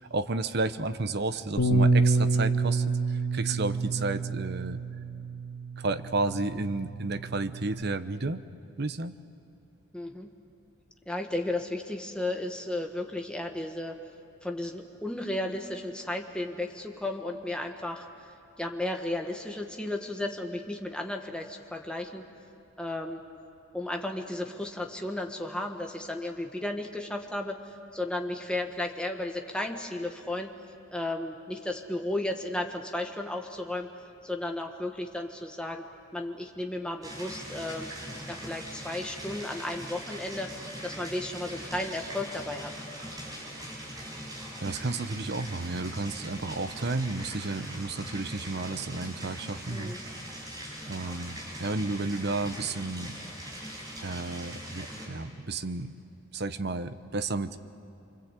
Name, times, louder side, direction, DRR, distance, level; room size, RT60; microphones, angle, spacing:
voice 1, 0.1-4.8 5.8-8.4 8.8-9.1 44.6-50.0 50.9-53.1 54.0-55.9 56.3-57.6, right 3 dB, 50° right, 11 dB, 0.9 m, -32 dB
Bass guitar, 1.6-7.8, right 3 dB, 85° left, 2.0 m, -28 dB
voice 2, 9.9-10.3 11.1-14.0 14.4-18.1 18.6-22.2 22.8-23.2 23.7-30.5 30.9-33.9 34.2-35.8 36.1-37.9 38.3-42.7 49.7-50.0, left 1 dB, 5° left, 3 dB, 1.5 m, -34 dB
sound 1, 37.0-55.1, equal, 20° right, 5.7 m, -41 dB
26.5 x 24.5 x 8.3 m, 2.7 s
head